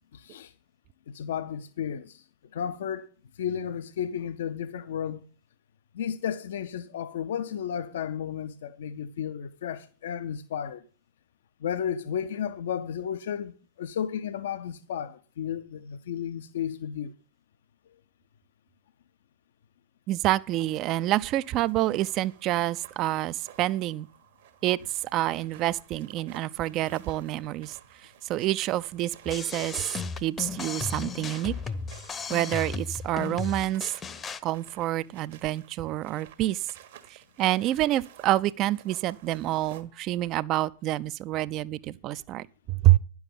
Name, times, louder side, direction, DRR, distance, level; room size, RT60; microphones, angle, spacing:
voice 1, 0.1-0.5 1.1-2.2 2.5-5.2 5.9-10.8 11.6-17.1, left 8 dB, 60° left, 0.6 m, -33 dB
voice 2, 20.1-24.1 24.6-27.7 28.3-29.9 30.2-31.5 32.3-33.9 34.4-36.7 37.1-43.0, right 15 dB, 35° right, 0.5 m, -27 dB
sound 1, 20.3-39.8, right 11 dB, 55° right, 1.4 m, -53 dB
sound 2, 29.3-34.4, left 5 dB, 20° left, 0.8 m, -35 dB
10.5 x 7.1 x 8.8 m
figure-of-eight pair, 90°, 0 cm